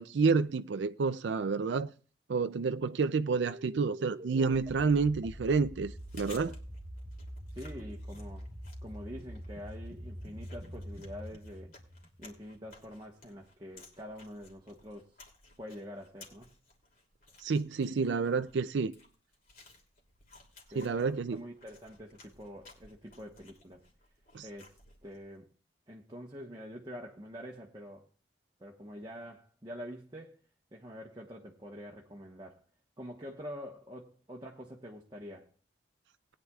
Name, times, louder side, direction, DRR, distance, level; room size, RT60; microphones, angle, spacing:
voice 1, 0.0-1.9 2.3-6.5 17.4-18.9 20.7-21.4 24.3-24.5, right 4 dB, 75° right, 0.4 m, -29 dB
sound 1, 3.3-12.7, equal, 40° right, 1.5 m, -45 dB
Chewing mastication, 5.8-25.3, left 3 dB, 50° left, 2.8 m, -58 dB
voice 2, 7.5-8.5 8.8-11.7 12.2-15.1 15.6-16.5 20.7-23.8 24.4-24.7 25.0-25.5 25.9-28.1 28.6-30.4 30.7-32.6 33.0-35.5, equal, 25° right, 1.2 m, -46 dB
19.5 x 9.6 x 2.4 m
head